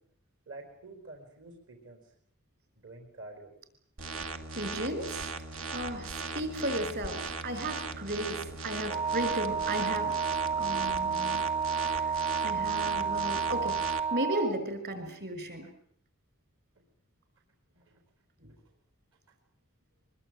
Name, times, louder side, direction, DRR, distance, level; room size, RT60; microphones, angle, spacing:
voice 1, 0.5-2.0 2.8-3.5 13.2-13.4 17.7-18.0, right 2 dB, 70° right, 3 dB, 4.9 m, -48 dB
sound 1, 4.0-14.0, right 4 dB, 90° right, 2.4 m, -38 dB
voice 2, 4.6-5.3 5.7-10.2 10.6-11.4 11.9-12.1 12.4-13.7 14.1-15.7, right 1 dB, 55° right, 9 dB, 6.3 m, -35 dB
Wind instrument woodwind instrument, 8.9-14.6, right 6 dB, 30° right, 1.2 m, -31 dB
23.5 x 23.0 x 9.1 m, 0.66 s
head